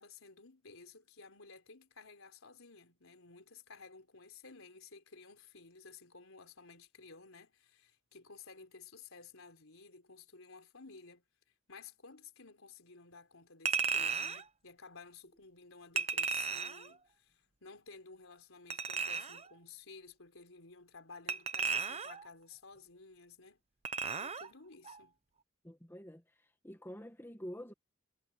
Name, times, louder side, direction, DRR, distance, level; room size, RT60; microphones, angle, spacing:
voice 1, 0.0-11.2 11.7-23.6 24.2-25.1, left 4 dB, 70° left, 4.4 m, -55 dB
Chink clink, 13.7-14.4 16.0-16.9 18.7-19.5 21.3-22.3 23.8-24.5 24.9-25.0, right 6 dB, 30° right, 0.8 m, -35 dB
voice 2, 25.6-26.2 26.6-27.7, equal, 10° left, 1.9 m, -47 dB
head